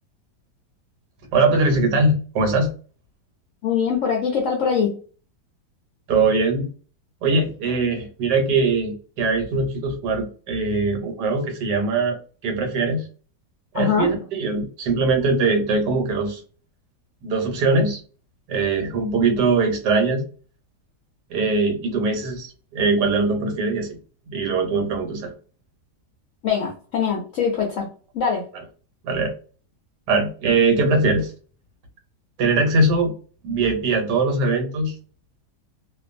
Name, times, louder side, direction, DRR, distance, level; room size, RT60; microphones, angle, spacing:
voice 1, 1.3-2.7 6.1-6.7 7.2-13.1 13.7-16.4 17.2-18.0 18.5-20.2 21.3-23.9 24.3-25.3 29.0-29.3 30.1-31.3 32.4-33.1 33.4-34.9, right 3 dB, 90° right, 4 dB, 1.4 m, -21 dB
voice 2, 3.6-5.0 13.7-14.1 26.4-27.9 28.1-28.4, left 6 dB, 70° left, 0 dB, 0.8 m, -22 dB
2.5 x 2.5 x 2.5 m, 0.39 s
omnidirectional pair, 1.8 m